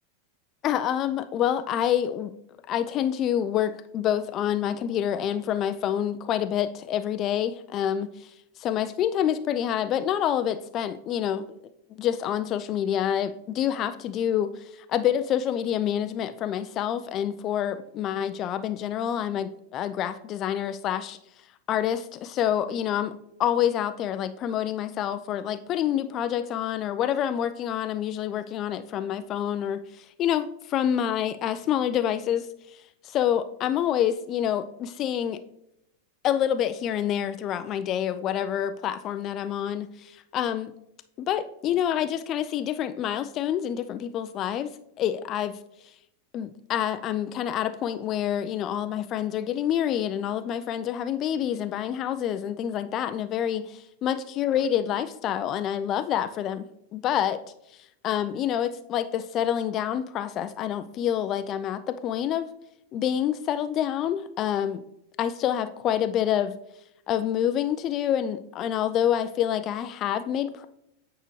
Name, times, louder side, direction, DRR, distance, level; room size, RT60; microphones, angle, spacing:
voice 1, 0.6-2.3 2.7-11.4 12.0-21.2 21.7-23.1 23.4-35.4 36.2-40.8 41.2-44.7 45.0-45.6 46.3-57.4 57.7-62.5 62.9-64.8 65.2-66.6 67.1-70.6, left 10 dB, 35° left, 11 dB, 0.3 m, -27 dB
8.6 x 4.9 x 3.1 m, 0.80 s
figure-of-eight pair, 90°, 0 cm